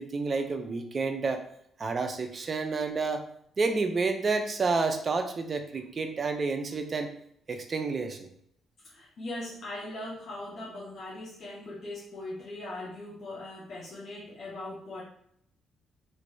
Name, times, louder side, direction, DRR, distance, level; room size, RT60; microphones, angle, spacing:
voice 1, 0.0-1.4 1.8-3.2 3.6-7.1 7.5-8.3, right 4 dB, 40° right, 6 dB, 0.5 m, -29 dB
voice 2, 8.8-15.0, left 1 dB, 60° left, -6 dB, 0.8 m, -40 dB
3.2 x 3.0 x 2.7 m, 0.69 s
cardioid pair, 90°, 0 cm